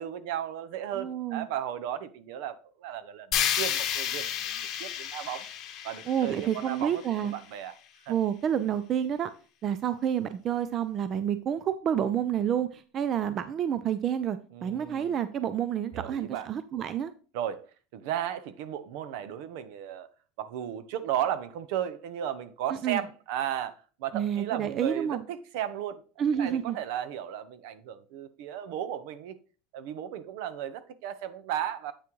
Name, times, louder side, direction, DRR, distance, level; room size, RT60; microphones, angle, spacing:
voice 1, 0.0-5.5 5.8-7.7 8.1-8.2 14.5-15.2 15.9-16.5 17.3-17.6 17.9-20.1 20.4-26.0 26.4-29.3 29.7-31.9, right 10 dB, 65° right, 0.7 m, -35 dB
voice 2, 1.0-1.5 6.1-7.3 8.1-9.3 9.6-17.1 22.8-23.0 24.1-25.2 26.2-26.8, right 9 dB, 35° right, 0.4 m, -29 dB
sound 1, 3.3-7.4, left 10 dB, 40° left, 1.0 m, -32 dB
8.3 x 6.0 x 3.1 m
supercardioid pair, 145°, 0 cm